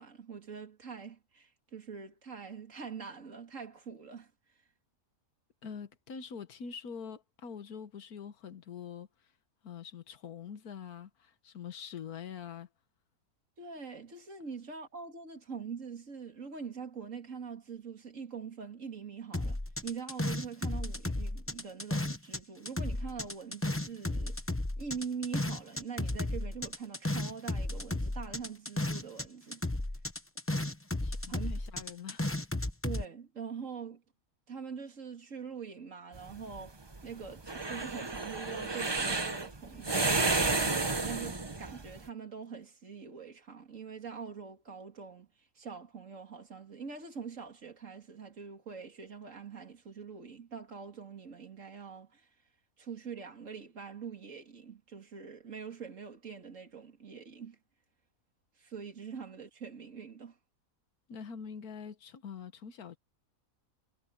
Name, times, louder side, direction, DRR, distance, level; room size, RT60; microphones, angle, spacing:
voice 1, 0.0-4.3 13.6-24.4 24.8-29.6 31.3-31.6 32.8-34.0 34.5-52.3 52.8-57.6 58.6-60.4, right 6 dB, 60° right, 2.9 m, -44 dB
voice 2, 5.6-9.1 9.6-12.7 31.0-32.2 61.1-63.0, left 7 dB, 90° left, 1.7 m, -44 dB
sound 1, 19.3-22.4 22.7-29.3 29.5-33.0, left 1 dB, 10° left, 0.8 m, -34 dB
sound 2, 36.1-42.0, right 3 dB, 20° right, 1.0 m, -31 dB
omnidirectional pair, 1.5 m